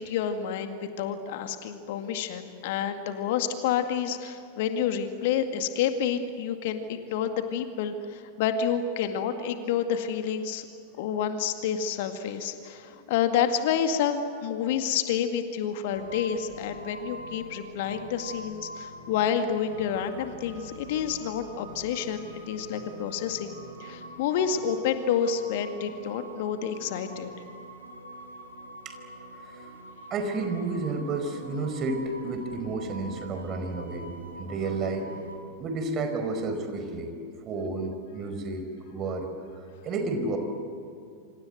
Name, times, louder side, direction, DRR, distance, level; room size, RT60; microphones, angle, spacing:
voice 1, 0.0-10.7 11.0-23.5 23.8-27.3, left 8 dB, 50° left, 7 dB, 2.1 m, -29 dB
sound 1, 15.9-35.4, right 1 dB, 85° right, 5.2 m, -45 dB
voice 2, 30.1-34.1 34.4-35.1 35.6-37.1 37.5-38.6 38.9-39.3 39.8-40.4, right 3 dB, 30° right, 6 dB, 4.8 m, -31 dB
28.0 x 27.0 x 7.9 m, 2.5 s
figure-of-eight pair, 90°, 0 cm